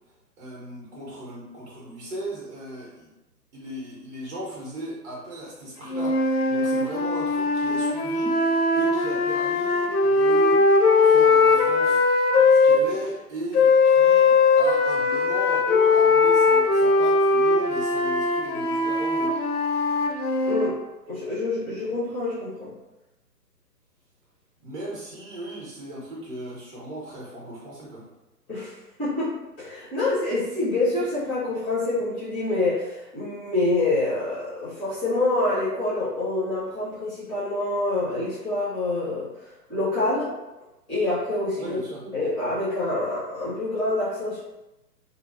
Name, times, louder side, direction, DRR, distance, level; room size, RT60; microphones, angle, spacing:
voice 1, 0.4-3.1 3.5-10.7 11.0-19.4 24.6-28.1 41.6-42.0, right 1 dB, 45° right, -5 dB, 1.1 m, -37 dB
sound 1, 5.9-12.8 13.5-20.7, left 3 dB, 65° left, 0.6 m, -20 dB
voice 2, 21.1-22.7 28.5-28.7 29.0-39.3 39.7-40.3 40.9-41.8 42.1-44.4, left 2 dB, ahead, -16 dB, 0.5 m, -26 dB
3.8 x 2.0 x 2.7 m, 0.99 s
figure-of-eight pair, 135°, 49 cm